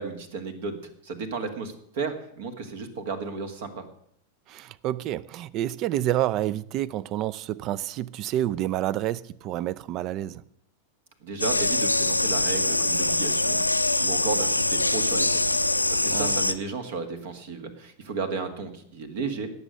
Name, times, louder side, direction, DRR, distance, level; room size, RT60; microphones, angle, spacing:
voice 1, 0.0-3.8 11.2-15.6 15.9-19.5, right 4 dB, 55° right, 1.8 m, -33 dB
voice 2, 4.5-10.4 16.1-16.4, right 13 dB, 35° right, 0.5 m, -29 dB
sound 1, 11.4-16.5, left 2 dB, 85° left, 0.5 m, -24 dB
18.0 x 7.0 x 6.5 m
figure-of-eight pair, 90°, 0 cm